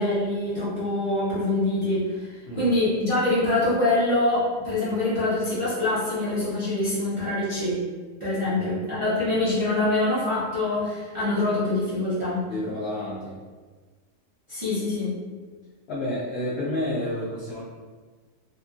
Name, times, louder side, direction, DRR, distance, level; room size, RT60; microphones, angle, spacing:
voice 1, 0.0-7.8 8.2-12.4 14.5-15.1, left 2 dB, 35° right, -12 dB, 0.5 m, -25 dB
voice 2, 12.5-13.4 15.9-17.6, left 1 dB, 85° left, -5 dB, 0.5 m, -30 dB
2.8 x 2.6 x 2.4 m, 1.4 s
omnidirectional pair, 1.6 m